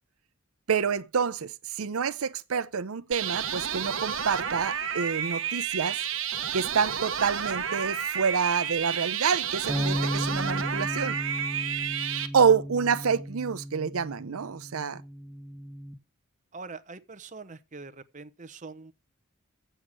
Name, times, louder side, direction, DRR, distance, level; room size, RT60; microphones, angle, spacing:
voice 1, 0.7-6.0 6.5-11.2 12.2-15.0, right 6 dB, 80° right, 0.6 m, -27 dB
sound 1, 3.1-12.3, right 8 dB, 65° right, 1.3 m, -31 dB
sound 2, 9.7-15.9, equal, 10° right, 1.3 m, -35 dB
voice 2, 16.5-18.9, right 4 dB, 35° right, 0.9 m, -43 dB
7.9 x 6.5 x 7.3 m
head